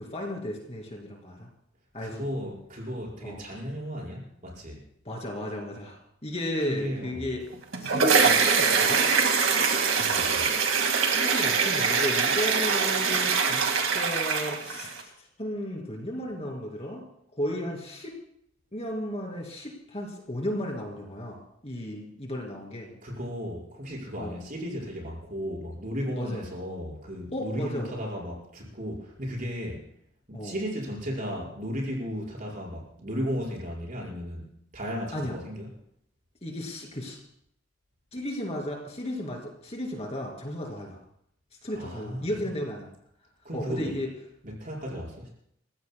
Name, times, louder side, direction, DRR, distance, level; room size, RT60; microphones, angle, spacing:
voice 1, 0.0-1.5 1.9-2.2 3.2-3.4 5.0-7.4 7.8-9.0 11.1-17.0 17.3-18.1 18.7-21.4 21.6-22.9 24.2-24.4 26.2-26.4 27.3-27.9 30.3-30.5 35.1-35.3 36.4-37.2 38.1-41.0 41.6-42.9 43.5-44.1 44.9-45.0, left 1 dB, 30° left, 0 dB, 2.8 m, -34 dB
voice 2, 2.0-4.8 6.6-7.3 10.0-10.6 23.0-29.8 30.3-34.5 34.7-35.7 41.7-42.3 43.4-44.0 44.4-45.3, equal, 45° right, -3 dB, 5.4 m, -35 dB
sound 1, 7.5-15.0, right 5 dB, 80° right, 2.0 m, -23 dB
29.0 x 16.0 x 2.3 m, 0.71 s
head